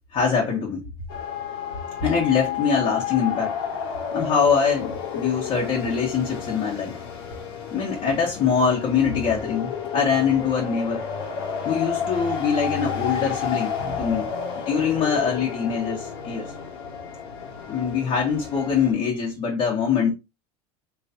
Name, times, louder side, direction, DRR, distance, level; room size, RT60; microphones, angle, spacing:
voice 1, 0.1-0.9 2.0-3.6 4.1-7.0 7.7-11.0 11.6-14.3 14.6-16.5 17.7-20.1, left 6 dB, 40° left, 1.4 m, -23 dB
sound 1, 1.1-18.9, left 7 dB, 75° left, 1.8 m, -31 dB
4.3 x 3.1 x 2.6 m
supercardioid pair, 115°, 13 cm